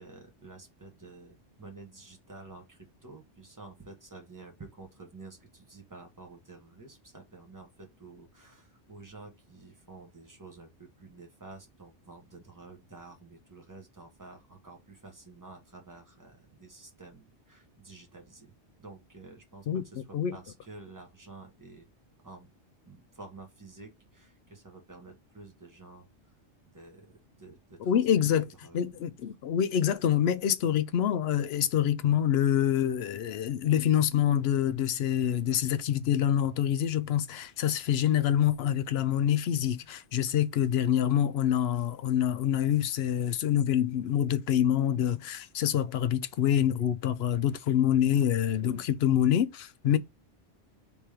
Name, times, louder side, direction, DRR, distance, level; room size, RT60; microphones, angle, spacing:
voice 1, 0.0-18.5 18.8-21.9 22.2-22.5 22.9-26.3 26.7-29.0 40.6-40.7, right 3 dB, 15° right, 1.1 m, -50 dB
voice 2, 27.8-28.5 28.7-50.0, left 10 dB, 65° left, 0.7 m, -26 dB
3.5 x 3.0 x 4.8 m
omnidirectional pair, 1.2 m